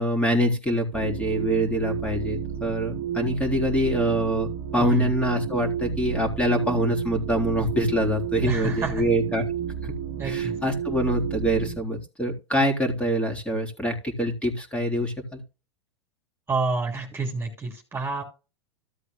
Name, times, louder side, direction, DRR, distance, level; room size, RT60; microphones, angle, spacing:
voice 1, 0.0-9.4 9.8-9.9 10.2-15.4, equal, 10° left, 2 dB, 3.8 m, -25 dB
sound 1, 0.9-11.8, right 9 dB, 50° right, 1.5 m, -31 dB
voice 2, 4.8-5.1 8.4-9.0 10.2-10.5 16.5-18.2, right 3 dB, 15° right, 1 dB, 3.0 m, -29 dB
15.0 x 8.0 x 2.2 m, 0.30 s
hypercardioid pair, 90°, 14 cm